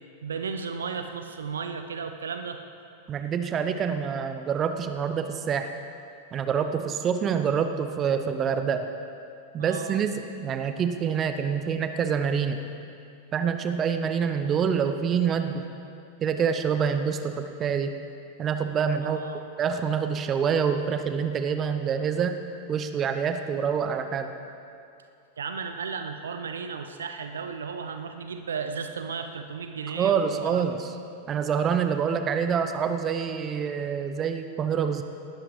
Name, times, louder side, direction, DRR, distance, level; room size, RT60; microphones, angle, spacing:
voice 1, 0.2-2.6 9.6-10.0 19.0-19.4 25.4-30.6, right 5 dB, 70° right, 7 dB, 0.8 m, -34 dB
voice 2, 3.1-5.7 6.3-8.9 9.5-12.6 13.3-15.7 16.2-18.0 18.4-19.2 19.6-22.4 22.7-24.3 29.9-31.0 31.3-35.0, right 7 dB, 25° right, 8 dB, 1.0 m, -26 dB
18.5 x 13.0 x 4.9 m, 2.5 s
figure-of-eight pair, 90°, 0 cm